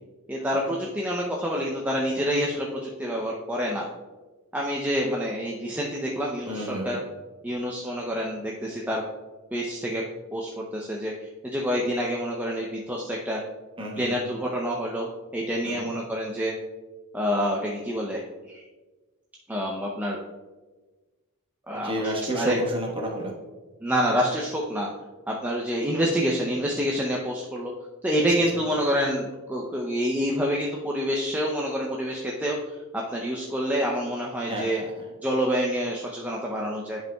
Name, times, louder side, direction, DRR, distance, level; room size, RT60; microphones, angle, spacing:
voice 1, 0.3-3.9 4.5-7.0 7.4-9.0 9.5-10.0 10.3-13.4 14.0-16.5 17.1-18.6 19.5-20.2 21.7-22.6 23.8-24.9 25.3-27.7 28.0-32.6 32.9-34.8 35.2-37.0, equal, 10° right, -2 dB, 0.5 m, -27 dB
voice 2, 6.5-7.0 13.8-14.2 15.6-15.9 21.7-23.3 34.5-35.1, right 1 dB, 25° right, -1 dB, 1.2 m, -31 dB
10.5 x 5.3 x 2.3 m, 1.2 s
head